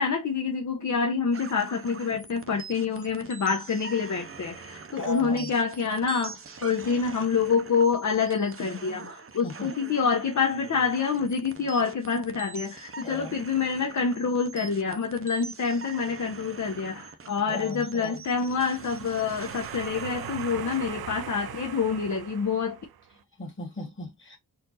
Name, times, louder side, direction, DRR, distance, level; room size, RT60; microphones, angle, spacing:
voice 1, 0.0-22.8, left 5 dB, 55° left, 0.8 m, -27 dB
sound 1, 1.3-20.8, right 5 dB, 40° right, 0.6 m, -44 dB
voice 2, 4.9-5.5 9.4-9.7 13.0-13.4 17.5-18.2 23.4-24.4, left 1 dB, 35° left, 2.0 m, -36 dB
sound 2, 18.4-23.1, right 9 dB, 90° right, 0.5 m, -40 dB
4.3 x 2.5 x 3.9 m
wide cardioid pair, 155°, 35 cm